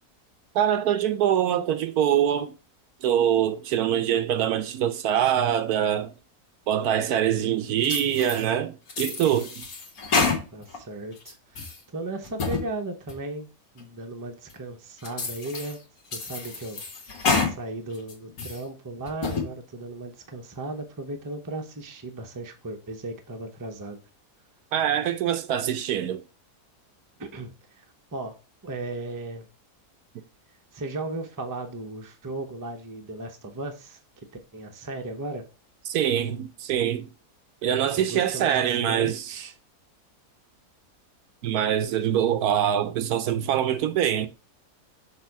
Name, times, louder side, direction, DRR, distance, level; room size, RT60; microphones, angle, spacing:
voice 1, 0.5-2.5 3.0-6.1 6.7-9.6 24.7-26.2 35.9-37.1 37.6-39.4 41.4-44.3, right 10 dB, 75° right, 1.1 m, -24 dB
sound 1, 7.8-8.4 8.9-10.8 11.2-11.8 12.2-12.7 13.1-13.2 13.8-13.9 14.5-14.6 15.0-15.7 16.1-17.5 17.9-18.6 19.1-19.5, left 4 dB, 65° left, 1.7 m, -28 dB
voice 2, 10.5-13.5 13.7-15.8 16.1-16.8 17.4-24.0 27.2-27.8 28.1-28.3 28.6-29.5 30.7-34.0 34.5-35.4 38.0-39.5, right 2 dB, 20° right, 0.6 m, -36 dB
6.7 x 3.0 x 4.6 m
omnidirectional pair, 1.7 m